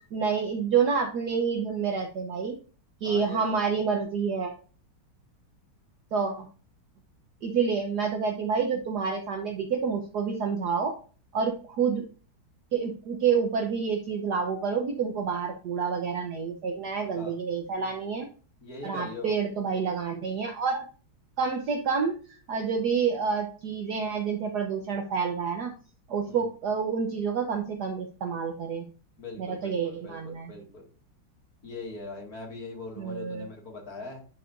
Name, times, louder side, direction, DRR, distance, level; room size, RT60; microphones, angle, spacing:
voice 1, 0.1-2.6 3.0-4.5 6.1-6.5 7.4-10.9 11.3-12.1 12.7-18.3 18.8-20.9 21.4-25.7 26.1-28.8 29.4-30.5 33.0-33.5, right 6 dB, 60° right, 3 dB, 1.3 m, -28 dB
voice 2, 3.0-3.6 17.1-17.4 18.6-19.4 26.3-26.5 29.2-30.8 31.6-34.2, left 3 dB, 45° left, 0 dB, 2.5 m, -41 dB
11.0 x 4.9 x 2.6 m, 0.38 s
omnidirectional pair, 2.3 m